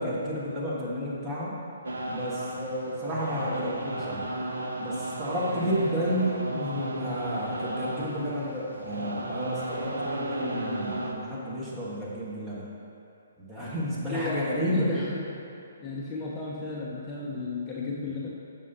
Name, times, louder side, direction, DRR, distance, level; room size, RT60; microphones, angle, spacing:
voice 1, 0.0-1.6 2.1-4.3 4.8-12.6 13.4-14.9, equal, 15° right, -7 dB, 1.4 m, -31 dB
sound 1, 1.8-11.1, right 1 dB, 75° right, 0.6 m, -34 dB
voice 2, 14.1-14.4 14.7-15.3 15.8-18.3, left 3 dB, 20° left, -4 dB, 0.6 m, -33 dB
7.0 x 5.6 x 2.8 m, 2.7 s
figure-of-eight pair, 130°, 0 cm